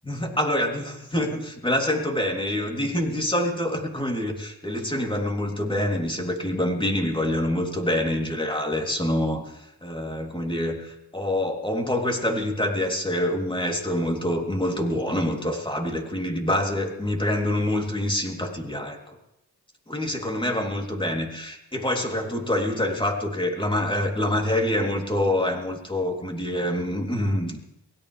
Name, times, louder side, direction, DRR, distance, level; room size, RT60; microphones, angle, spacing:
voice 1, 0.1-19.2 19.9-27.7, left 1 dB, 10° left, 1 dB, 3.3 m, -26 dB
23.0 x 17.5 x 3.4 m, 0.86 s
cardioid pair, 45°, 42 cm